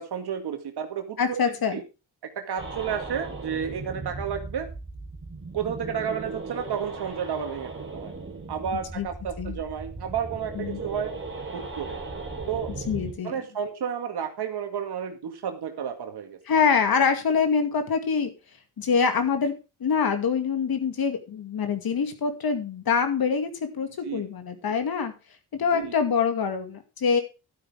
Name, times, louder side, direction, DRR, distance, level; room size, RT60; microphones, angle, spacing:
voice 1, 0.0-1.8 2.4-4.7 5.5-8.1 8.5-11.1 11.5-12.0 12.5-12.7 13.2-16.4 24.0-24.2 25.7-25.9, right 7 dB, 70° right, 5 dB, 2.0 m, -31 dB
voice 2, 1.2-1.8 9.0-9.1 9.4-9.6 10.6-10.8 12.9-13.4 16.5-18.3 18.8-19.5 19.8-23.5 23.7-25.1 25.6-27.2, left 6 dB, 60° left, 7 dB, 2.3 m, -25 dB
sound 1, 2.6-13.1, right 3 dB, 30° right, 3.2 m, -37 dB
12.0 x 9.0 x 3.6 m, 0.29 s
cardioid pair, 85°, 40 cm